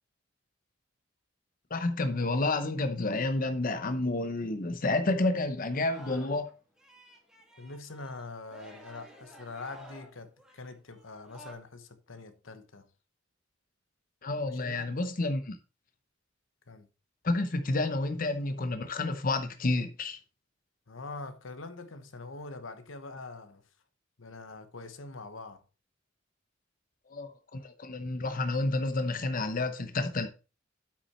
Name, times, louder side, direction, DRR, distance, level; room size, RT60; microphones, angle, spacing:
voice 1, 1.7-6.5 14.2-15.6 17.2-20.2 27.1-30.3, left 2 dB, 45° left, 0.8 m, -30 dB
Singing, 5.7-6.5 6.8-11.5, equal, 5° right, 1.8 m, -52 dB
voice 2, 7.6-12.9 14.4-14.9 16.7-16.9 20.9-23.6 24.2-25.6, left 3 dB, 85° left, 1.1 m, -44 dB
8.4 x 6.1 x 4.3 m
head